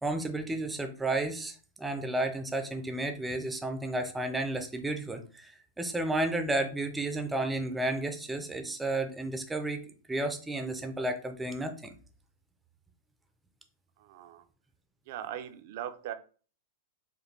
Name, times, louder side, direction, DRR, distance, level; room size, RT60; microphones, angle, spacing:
voice 1, 0.0-9.8 10.1-11.9, right 2 dB, 5° right, 6 dB, 0.5 m, -32 dB
voice 2, 14.0-14.5 15.1-16.1, right 11 dB, 55° right, 9 dB, 0.5 m, -40 dB
5.0 x 2.2 x 3.2 m, 0.39 s
supercardioid pair, 155°, 0 cm